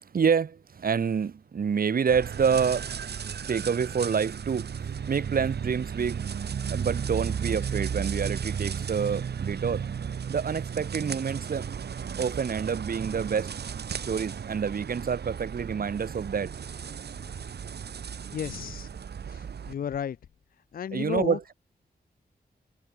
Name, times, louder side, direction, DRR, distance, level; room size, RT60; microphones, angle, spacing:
voice 1, 0.0-2.9 3.5-4.7 5.1-6.2 6.7-9.9 10.3-11.7 12.2-13.5 14.0-16.5 20.9-21.5, right 6 dB, 60° right, 2.7 m, -27 dB
sound 1, 2.1-19.7, right 7 dB, 90° right, 3.4 m, -34 dB
voice 2, 18.3-18.9 19.3-20.2 20.7-21.4, left 8 dB, 60° left, 0.5 m, -33 dB
wide cardioid pair, 170°, 17 cm